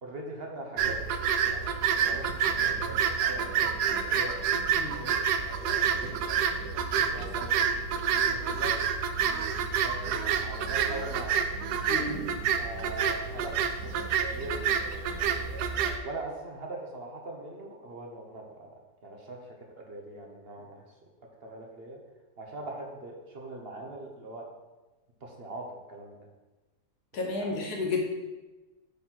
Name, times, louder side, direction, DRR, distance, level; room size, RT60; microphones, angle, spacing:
voice 1, 0.0-1.0 1.4-6.6 6.9-8.8 9.7-11.4 12.6-15.4 16.0-20.9 21.4-22.0 22.4-24.5 25.2-26.2 27.4-27.7, right 2 dB, 40° right, 1 dB, 1.0 m, -42 dB
sound 1, 0.8-16.0, right 7 dB, 75° right, 1.1 m, -28 dB
voice 2, 11.9-12.3 27.1-28.0, left 3 dB, 65° left, 0 dB, 1.7 m, -31 dB
8.3 x 4.3 x 4.5 m, 1.2 s
omnidirectional pair, 1.8 m